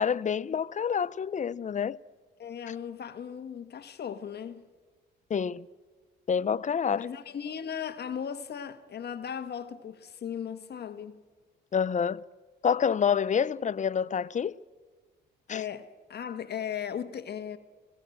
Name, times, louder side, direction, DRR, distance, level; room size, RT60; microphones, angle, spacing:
voice 1, 0.0-2.0 5.3-5.7 6.3-7.1 11.7-12.3 12.6-14.5 15.5-15.6, left 7 dB, 40° left, 0.7 m, -27 dB
voice 2, 2.4-4.6 6.9-11.2 15.5-17.6, left 8 dB, 55° left, 1.6 m, -37 dB
26.5 x 18.5 x 7.9 m
cardioid pair, 90°, 20 cm